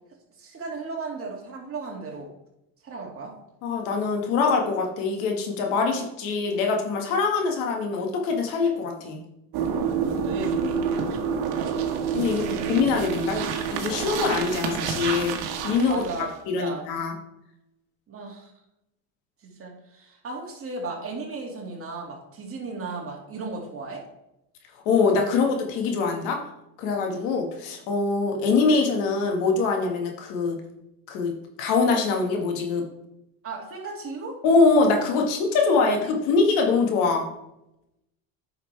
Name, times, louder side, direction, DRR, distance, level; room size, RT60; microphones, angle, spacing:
voice 1, 0.4-2.3 2.8-3.3 10.0-10.6 12.4-12.7 15.9-16.3 16.6-16.9 18.1-18.5 19.4-24.0 27.2-27.3 33.4-34.4 35.8-36.2, right 3 dB, 35° right, -1 dB, 2.4 m, -36 dB
voice 2, 3.6-9.2 12.1-15.4 15.6-16.0 16.5-17.1 24.9-26.4 26.8-30.6 31.1-31.3 31.6-32.8 34.4-37.3, left 4 dB, 75° left, 2 dB, 1.9 m, -23 dB
sound 1, 9.5-16.3, right 6 dB, 65° right, 1.5 m, -28 dB
9.5 x 5.9 x 3.4 m, 0.85 s
supercardioid pair, 115°, 41 cm